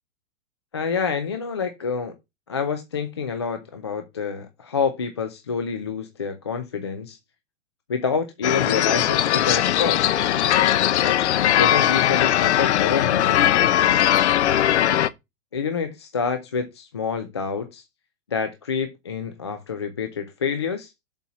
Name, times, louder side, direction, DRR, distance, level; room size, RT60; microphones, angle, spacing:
voice 1, 0.7-2.1 2.5-7.2 7.9-10.1 11.0-13.4 15.5-17.8 18.3-20.9, left 6 dB, 25° left, 0.4 m, -27 dB
sound 1, 8.4-15.1, left 12 dB, 60° left, 0.7 m, -19 dB
7.1 x 4.2 x 6.0 m
supercardioid pair, 180°, 38 cm